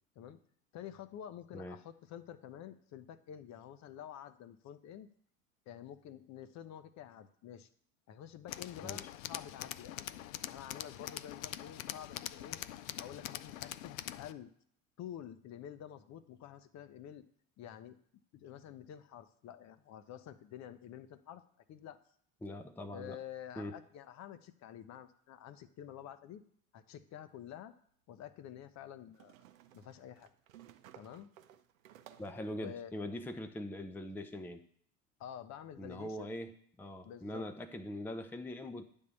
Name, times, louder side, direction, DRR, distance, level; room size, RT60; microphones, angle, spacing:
voice 1, 0.7-5.1 5.7-7.7 8.1-10.1 10.5-12.6 13.0-14.5 15.0-17.3 17.6-18.0 18.3-21.4 21.7-22.0 22.9-26.4 26.7-27.7 28.1-29.3 29.7-30.3 30.9-31.3 32.5-32.9 35.2-36.4 37.0-37.4, left 10 dB, 40° left, 12 dB, 0.7 m, -49 dB
Tools, 8.5-14.3, left 13 dB, 75° left, 0.5 m, -44 dB
voice 2, 22.4-23.2 23.6-23.8 32.2-34.7 35.8-38.8, left 1 dB, 5° left, 7 dB, 0.5 m, -42 dB
sound 1, 27.2-27.3 29.1-32.5, right 11 dB, 75° right, 0.7 m, -58 dB
9.4 x 3.6 x 6.8 m, 0.63 s
hypercardioid pair, 75°, 41 cm